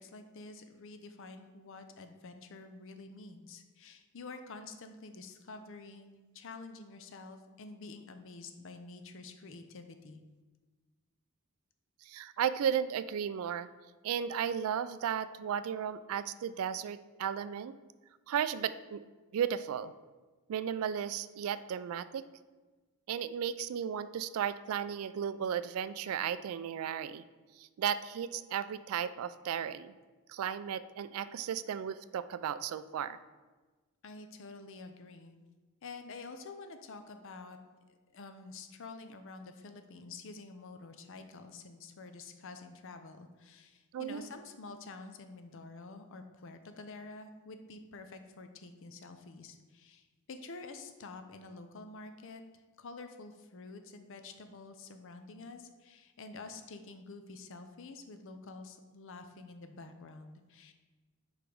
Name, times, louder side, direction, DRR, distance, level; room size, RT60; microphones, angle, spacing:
voice 1, 0.0-10.2 34.0-35.4 35.8-37.6 37.9-52.4 52.8-60.7, left 3 dB, 60° left, 7 dB, 0.6 m, -48 dB
voice 2, 12.1-13.7 14.0-17.7 18.3-19.0 19.3-19.9 20.5-22.2 23.1-27.2 27.6-29.9 30.3-33.2 43.9-44.2, right 8 dB, 70° right, 15 dB, 0.3 m, -34 dB
4.9 x 4.8 x 5.2 m, 1.3 s
head